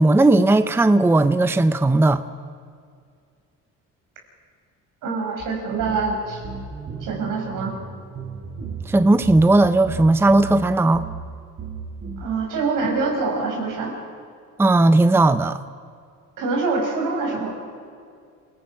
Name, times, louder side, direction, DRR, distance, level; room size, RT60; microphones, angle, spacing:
voice 1, 0.0-2.2 8.9-11.1 14.6-15.6, right 2 dB, 5° right, 0.6 m, -16 dB
voice 2, 5.0-6.4 7.0-7.7 12.2-13.9 16.4-17.6, right 4 dB, 80° right, 6.3 m, -25 dB
sound 1, 5.4-5.5 5.8-10.6 10.9-11.3 11.6-12.2, right 5 dB, 45° right, 3.5 m, -35 dB
27.5 x 18.0 x 5.8 m
cardioid pair, 110°, 32 cm